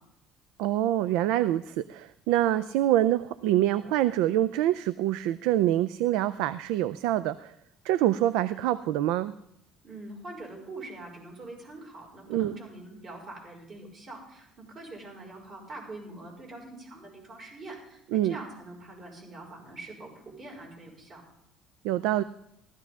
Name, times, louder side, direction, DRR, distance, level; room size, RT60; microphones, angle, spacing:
voice 1, 0.6-7.5 7.8-9.3 12.3-12.6 18.1-18.4 21.8-22.2, right 13 dB, 90° right, 16 dB, 0.4 m, -25 dB
voice 2, 9.8-21.2, right 2 dB, 40° right, -2 dB, 5.1 m, -44 dB
15.5 x 13.5 x 3.6 m, 0.79 s
cardioid pair, 140°, 0 cm